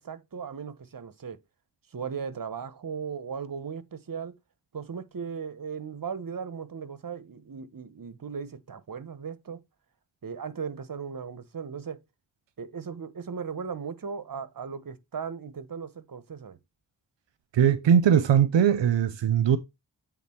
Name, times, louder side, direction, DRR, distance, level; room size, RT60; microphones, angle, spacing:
voice 1, 0.0-1.4 1.9-4.3 4.7-9.6 10.2-12.0 12.6-16.6, right 6 dB, 50° right, 1.0 m, -37 dB
voice 2, 17.5-19.6, right 8 dB, 80° right, 0.6 m, -20 dB
8.4 x 3.8 x 4.3 m
cardioid pair, 45°, 44 cm